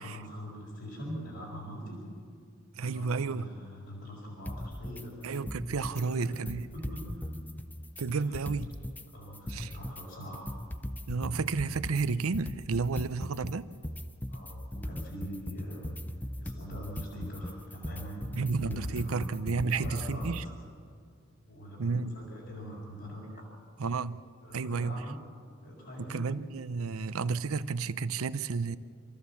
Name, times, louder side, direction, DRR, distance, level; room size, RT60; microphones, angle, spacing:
voice 1, 0.0-2.1 2.8-5.2 5.9-6.3 6.7-7.3 7.7-7.8 8.3-8.4 9.1-10.5 14.3-16.0 16.4-19.2 19.6-20.5 21.5-23.5 24.4-25.2 25.6-26.3, equal, 70° left, -5 dB, 4.5 m, -43 dB
voice 2, 2.7-3.4 5.2-6.7 8.0-8.7 9.5-9.7 11.1-13.7 18.4-20.4 21.8-22.1 23.8-24.2 24.5-25.0 26.0-28.8, right 4 dB, 85° right, 14 dB, 0.6 m, -31 dB
sound 1, 4.5-5.0 5.3-6.0 6.3-9.0 9.3-20.5, left 1 dB, 10° left, 0.5 m, -39 dB
26.5 x 14.5 x 7.1 m, 2.1 s
head